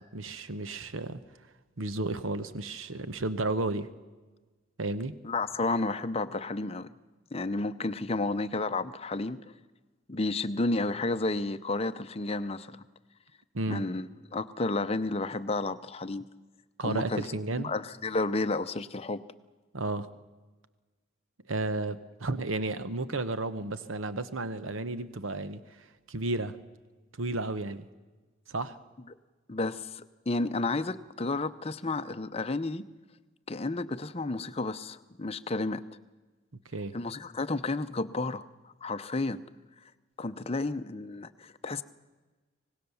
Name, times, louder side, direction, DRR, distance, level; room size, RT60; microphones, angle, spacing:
voice 1, 0.1-1.2 1.8-3.9 4.8-5.1 13.5-13.8 16.8-17.7 19.7-20.1 21.5-26.6 27.2-27.8 28.5-28.8 36.7-36.9, right 2 dB, 80° right, 13 dB, 1.0 m, -32 dB
voice 2, 5.2-6.9 7.3-9.6 10.1-12.8 13.7-16.2 16.8-17.3 17.6-19.2 29.5-32.9 33.5-35.8 36.9-38.5 38.8-39.4 39.8-39.9 40.2-41.8, left 2 dB, 30° left, 11 dB, 0.7 m, -31 dB
25.0 x 19.0 x 7.1 m, 1.3 s
head